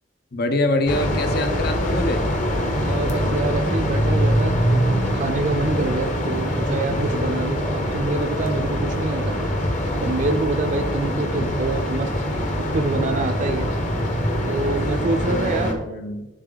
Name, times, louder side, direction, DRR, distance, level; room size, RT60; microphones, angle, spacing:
voice 1, 0.3-2.3 15.3-16.3, left 2 dB, 60° left, 7 dB, 0.8 m, -25 dB
sound 1, 0.9-15.7, equal, 45° left, 1.1 m, -23 dB
voice 2, 2.8-9.3 10.0-12.1 12.7-13.7 14.5-15.9, right 2 dB, 45° right, 5 dB, 0.5 m, -26 dB
10.0 x 3.9 x 3.9 m, 1.1 s
head